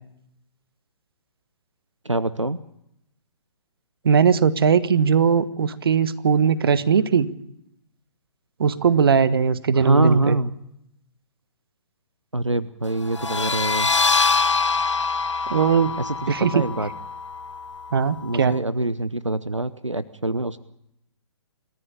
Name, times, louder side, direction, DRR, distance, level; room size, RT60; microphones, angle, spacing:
voice 1, 2.0-2.6 9.7-10.5 12.3-13.9 16.0-16.9 18.2-20.6, right 2 dB, 90° right, 18 dB, 0.9 m, -24 dB
voice 2, 4.0-7.3 8.6-10.4 15.5-15.9 16.3-16.6 17.9-18.6, right 6 dB, 50° right, 15 dB, 1.5 m, -19 dB
sound 1, 13.1-18.5, left 4 dB, 75° left, 0.8 m, -25 dB
27.5 x 14.5 x 8.8 m, 0.78 s
figure-of-eight pair, 125°, 15 cm